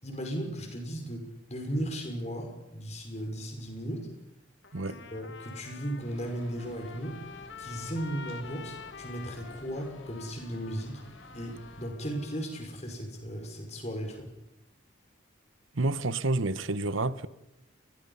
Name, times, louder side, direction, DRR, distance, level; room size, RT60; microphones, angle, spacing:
voice 1, 0.0-4.1 4.9-7.2 7.6-11.0 11.3-14.3, right 1 dB, 35° left, 5.5 m, -36 dB
Trumpet, 4.6-12.7, left 6 dB, 60° left, 1.4 m, -48 dB
sound 1, 6.0-11.9, left 2 dB, 80° left, 6.5 m, -53 dB
voice 2, 15.7-17.3, right 2 dB, 80° right, 1.1 m, -29 dB
30.0 x 22.0 x 5.6 m
head